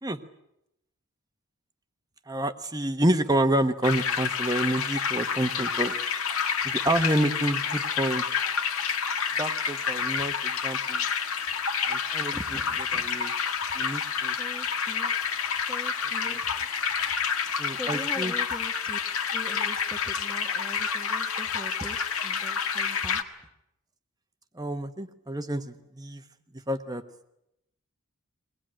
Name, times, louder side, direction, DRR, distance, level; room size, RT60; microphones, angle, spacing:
voice 1, 2.3-5.9 6.6-8.2 9.4-11.0 11.9-12.4 12.9-13.3 13.7-14.3 17.6-18.3 24.5-26.2 26.7-27.0, right 1 dB, 15° right, 8 dB, 1.2 m, -28 dB
sound 1, 3.8-23.2, left 6 dB, 75° left, 1.7 m, -29 dB
voice 2, 12.3-13.1 14.4-15.1 15.7-16.5 17.7-19.0 19.3-22.0 22.2-23.2, equal, 5° left, 4 dB, 1.3 m, -41 dB
23.0 x 19.0 x 8.9 m, 0.82 s
head